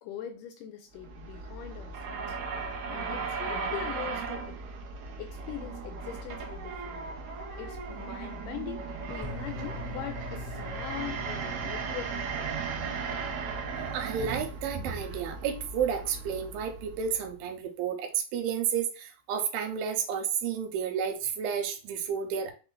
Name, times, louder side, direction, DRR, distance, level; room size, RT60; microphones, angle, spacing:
voice 1, 0.0-2.4 2.9-4.6 5.2-7.2 7.6-12.5, left 10 dB, 80° left, 6 dB, 1.9 m, -42 dB
sound 1, 0.9-17.3, right 5 dB, 70° right, 2.0 m, -37 dB
sound 2, 9.2-17.3, left 2 dB, 35° left, 0.3 m, -45 dB
voice 2, 13.9-22.5, right 7 dB, 90° right, 5 dB, 2.5 m, -31 dB
5.6 x 2.4 x 3.7 m, 0.34 s
omnidirectional pair, 4.1 m